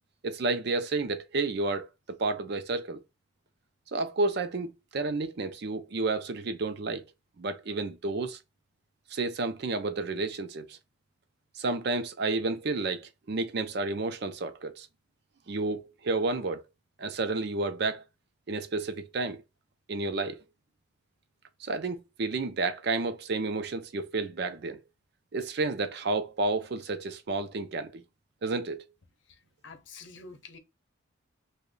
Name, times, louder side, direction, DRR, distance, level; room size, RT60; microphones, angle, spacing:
voice 1, 0.2-3.0 3.9-7.0 7.4-8.4 9.1-10.8 11.6-14.9 15.5-16.6 17.0-18.0 18.5-19.4 19.9-20.4 21.6-24.8 25.3-28.0 28.4-28.8, right 3 dB, 55° right, 0.5 m, -31 dB
voice 2, 29.3-30.6, left 4 dB, 65° left, 0.7 m, -48 dB
3.0 x 2.1 x 3.7 m
head